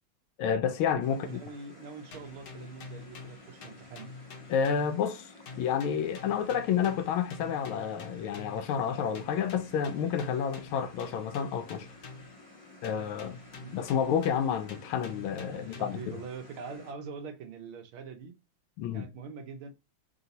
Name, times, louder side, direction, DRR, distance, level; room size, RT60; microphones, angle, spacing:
voice 1, 0.4-1.4 4.5-5.3 5.6-11.9 12.8-13.4 13.7-16.0 18.8-19.1, left 7 dB, 80° left, 1.4 m, -30 dB
sound 1, 1.0-16.9, left 2 dB, 20° left, 0.9 m, -53 dB
voice 2, 1.1-4.1 13.6-13.8 15.5-18.3 18.9-19.7, right 5 dB, 75° right, 1.6 m, -43 dB
sound 2, 2.1-5.2 5.5-8.7 9.1-12.5 12.8-16.2, left 3 dB, 60° left, 1.2 m, -48 dB
3.9 x 2.7 x 4.0 m
omnidirectional pair, 2.4 m